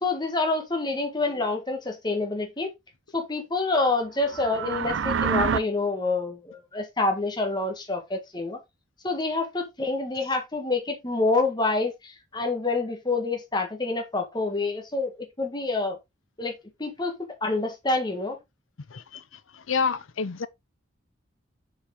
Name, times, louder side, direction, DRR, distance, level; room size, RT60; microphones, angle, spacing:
voice 1, 0.0-2.7 3.1-8.6 9.0-16.0 16.4-17.1 17.4-18.4, left 3 dB, 20° left, 1.6 m, -27 dB
sound 1, 4.2-5.6, right 6 dB, 70° right, 0.5 m, -26 dB
voice 2, 18.9-19.2 19.5-20.5, left 5 dB, 80° left, 0.7 m, -28 dB
6.8 x 4.8 x 3.8 m
head